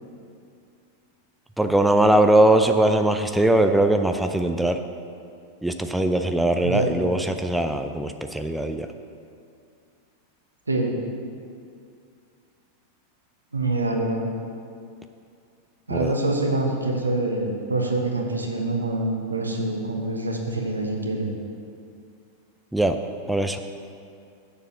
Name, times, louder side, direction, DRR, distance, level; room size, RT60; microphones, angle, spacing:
voice 1, 1.6-4.8 5.6-8.9 15.9-16.1 22.7-23.0 23.3-23.6, right 1 dB, 5° right, 6 dB, 0.5 m, -20 dB
voice 2, 6.6-7.0 10.7-10.9 13.5-14.3 15.9-21.3, right 2 dB, 80° right, 1 dB, 1.3 m, -25 dB
7.1 x 6.9 x 7.6 m, 2.4 s
figure-of-eight pair, 90°, 0 cm